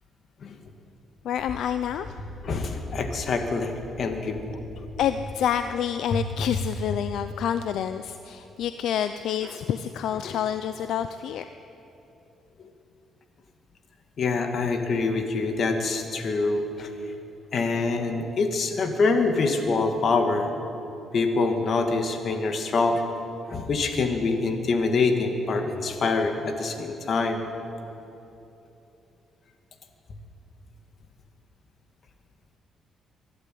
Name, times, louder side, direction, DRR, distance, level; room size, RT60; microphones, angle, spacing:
voice 1, 1.2-2.1 5.0-11.4, left 9 dB, 75° left, 10 dB, 0.6 m, -28 dB
voice 2, 2.4-4.4 10.2-10.3 14.2-16.9 17.5-20.5 21.1-23.0 23.5-27.4, left 3 dB, 55° left, 5 dB, 2.3 m, -25 dB
23.5 x 11.5 x 9.4 m, 3.0 s
cardioid pair, 90°, 0 cm